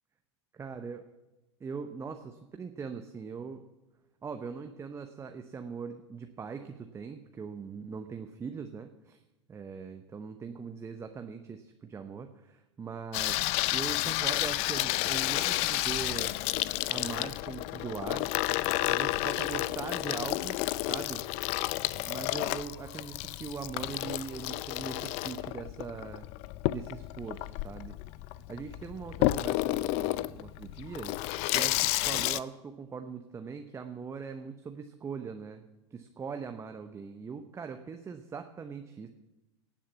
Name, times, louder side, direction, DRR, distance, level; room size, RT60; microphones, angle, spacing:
voice 1, 0.5-1.0 1.6-3.6 4.2-9.2 9.5-16.4 16.9-18.3 18.8-20.6 20.9-21.2 22.1-26.3 26.7-28.0 28.3-31.1 31.5-35.6 35.9-39.1, right 5 dB, 20° right, 6 dB, 0.8 m, -41 dB
Water tap faucet / Sink (filling or washing), 13.1-32.4, left 18 dB, 45° left, 0.5 m, -31 dB
17.0 x 7.4 x 7.3 m, 1.0 s
hypercardioid pair, 100°, 15 cm